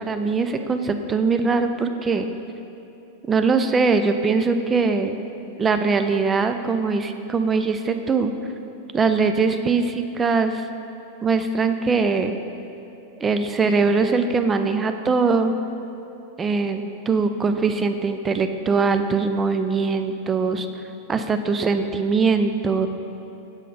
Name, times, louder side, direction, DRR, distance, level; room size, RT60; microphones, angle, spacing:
voice 1, 0.1-2.3 3.3-5.2 5.6-8.3 8.9-10.6 11.2-12.3 13.2-15.5 16.4-20.7 21.1-22.9, right 4 dB, 20° right, 8 dB, 0.4 m, -21 dB
7.5 x 3.8 x 5.1 m, 2.9 s
figure-of-eight pair, 90°, 0 cm